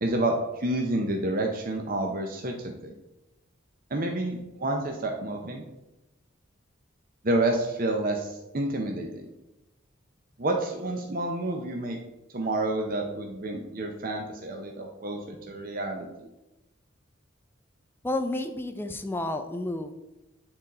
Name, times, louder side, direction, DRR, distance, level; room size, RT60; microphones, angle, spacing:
voice 1, 0.0-2.9 3.9-5.6 7.2-9.2 10.4-12.0 12.3-16.1, right 2 dB, 45° right, 2 dB, 0.7 m, -29 dB
voice 2, 18.0-19.9, left 2 dB, 10° left, 7 dB, 0.5 m, -31 dB
8.9 x 3.9 x 4.2 m, 0.97 s
head